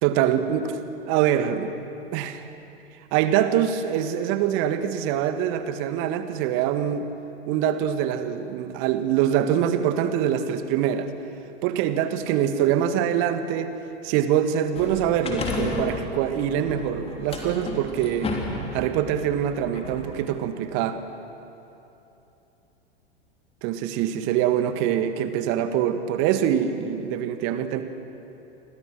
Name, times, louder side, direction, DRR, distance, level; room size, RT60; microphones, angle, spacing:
voice 1, 0.0-0.8 1.1-1.7 2.1-2.4 3.1-7.1 7.5-11.1 11.6-13.7 14.0-18.3 18.7-21.0 23.6-27.8, right 10 dB, 40° right, 9 dB, 1.7 m, -24 dB
sound 1, 14.7-20.4, left 2 dB, 15° left, 3.7 m, -33 dB
29.5 x 24.0 x 6.2 m, 3.0 s
figure-of-eight pair, 95°, 33 cm